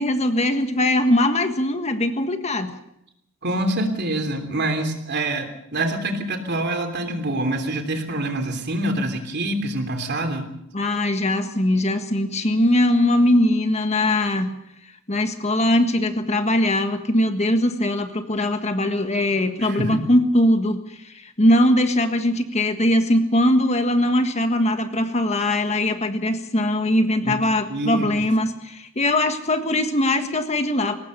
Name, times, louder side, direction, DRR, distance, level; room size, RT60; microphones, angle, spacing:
voice 1, 0.0-2.7 10.7-14.5 15.1-31.0, left 1 dB, 30° left, 8 dB, 1.6 m, -21 dB
voice 2, 3.4-10.5 19.6-20.0 27.2-28.1, right 1 dB, 55° right, 6 dB, 3.2 m, -26 dB
22.0 x 18.5 x 6.8 m, 0.80 s
head